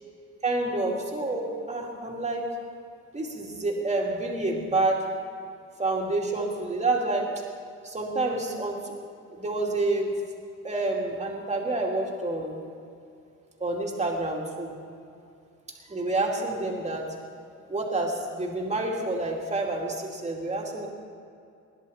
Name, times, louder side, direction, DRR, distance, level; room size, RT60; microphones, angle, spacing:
voice 1, 0.4-2.4 3.1-5.0 5.8-7.3 7.8-8.9 9.3-10.1 10.6-12.6 13.6-14.7 15.9-17.1 17.7-20.9, right 2 dB, 20° right, -1 dB, 2.7 m, -28 dB
20.0 x 11.0 x 4.3 m, 2.5 s
cardioid pair, 90°, 30 cm